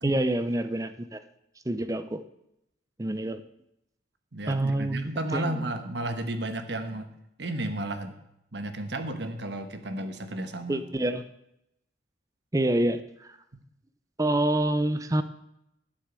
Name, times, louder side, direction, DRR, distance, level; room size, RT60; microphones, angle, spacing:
voice 1, 0.0-1.2 1.7-2.2 3.0-3.4 4.5-5.6 10.7-11.3 12.5-13.3 14.2-15.2, right 1 dB, 15° right, 11 dB, 0.5 m, -27 dB
voice 2, 4.3-7.1 7.4-8.1 8.5-10.8, right 1 dB, 60° right, 8 dB, 1.2 m, -33 dB
11.5 x 6.4 x 8.2 m, 0.81 s
head